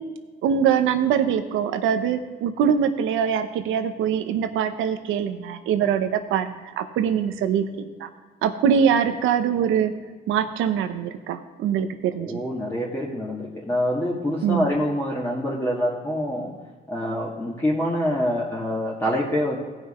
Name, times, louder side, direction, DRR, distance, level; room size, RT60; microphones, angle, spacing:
voice 1, 0.4-7.6 8.0-8.1 8.4-9.9 10.3-12.4 14.4-14.7, right 8 dB, 90° right, 9 dB, 0.8 m, -23 dB
voice 2, 12.2-16.5 16.9-19.6, equal, 15° left, -5 dB, 1.9 m, -26 dB
16.5 x 6.0 x 4.3 m, 1.4 s
cardioid pair, 90°, 20 cm